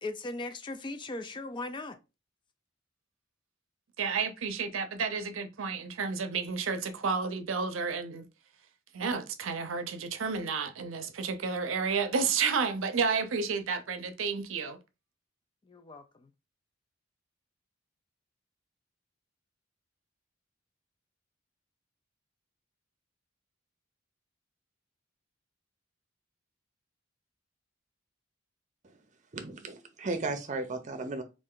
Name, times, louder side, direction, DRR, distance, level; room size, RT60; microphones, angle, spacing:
voice 1, 0.0-2.0 15.7-16.3, left 2 dB, 25° left, 0.3 m, -38 dB
voice 2, 4.0-8.3 8.9-14.8, right 5 dB, 80° right, 0.6 m, -31 dB
voice 3, 29.3-31.2, right 3 dB, 40° right, 0.6 m, -35 dB
3.2 x 2.5 x 3.7 m
head